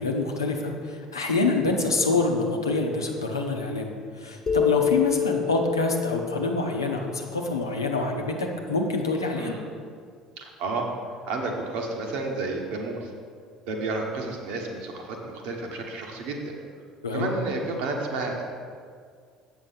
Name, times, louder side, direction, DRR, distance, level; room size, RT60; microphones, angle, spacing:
voice 1, 0.0-9.5 17.0-17.3, left 3 dB, 80° left, 2 dB, 0.8 m, -26 dB
sound 1, 4.5-8.0, left 9 dB, 30° left, 1.3 m, -28 dB
voice 2, 10.4-10.9 11.3-13.1 13.7-16.5 17.1-18.4, right 3 dB, 60° right, 1 dB, 1.3 m, -31 dB
7.9 x 6.1 x 5.7 m, 2.1 s
figure-of-eight pair, 60°, 2 cm